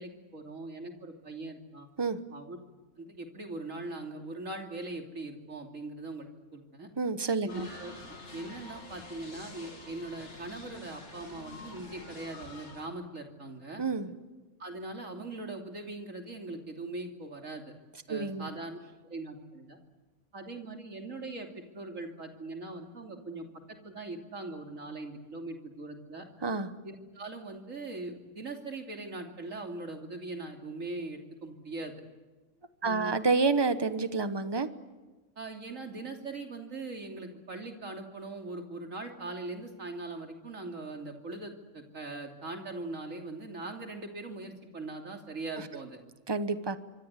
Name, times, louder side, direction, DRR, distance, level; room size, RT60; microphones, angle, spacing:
voice 1, 0.0-1.9 2.3-2.6 3.0-6.9 7.4-13.8 14.6-17.7 18.1-18.8 19.1-19.8 20.3-23.5 23.8-26.2 26.8-31.9 32.8-33.2 35.4-46.0, right 2 dB, 65° right, 2 dB, 3.4 m, -41 dB
voice 2, 7.0-7.7 13.8-14.1 18.1-18.5 26.4-26.7 32.8-34.7 45.6-45.7 46.3-46.8, right 4 dB, 20° right, 11 dB, 1.1 m, -29 dB
sound 1, 7.5-12.9, left 2 dB, 55° left, 3.2 m, -47 dB
25.5 x 25.0 x 8.3 m, 1.2 s
omnidirectional pair, 1.5 m